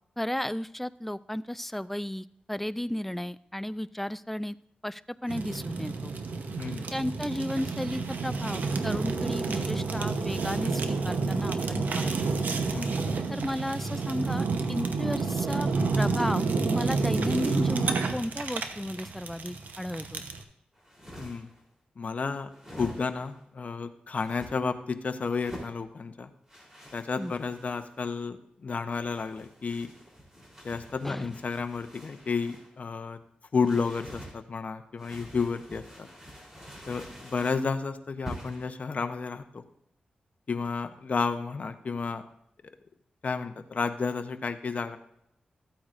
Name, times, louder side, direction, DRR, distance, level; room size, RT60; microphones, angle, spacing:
voice 1, 0.2-4.6 4.8-6.1 6.9-12.1 13.3-15.7 16.0-20.2 27.2-27.3 31.0-31.3, left 1 dB, 5° left, 15 dB, 0.3 m, -34 dB
Fire, 5.3-20.4, right 4 dB, 75° right, 0.9 m, -29 dB
sound 1, 20.7-21.6 22.5-23.4 24.1-24.5 25.3-25.8 26.5-27.9 28.9-32.7 33.6-34.4 35.0-37.6 38.2-38.7, equal, 15° right, 3.5 m, -46 dB
voice 2, 21.2-21.5 22.0-26.3 26.9-29.9 30.6-33.2 33.5-36.1 36.9-39.6 40.5-42.2 43.2-45.0, left 5 dB, 55° left, 9 dB, 0.8 m, -32 dB
14.0 x 8.6 x 2.5 m, 0.74 s
cardioid pair, 70°, 3 cm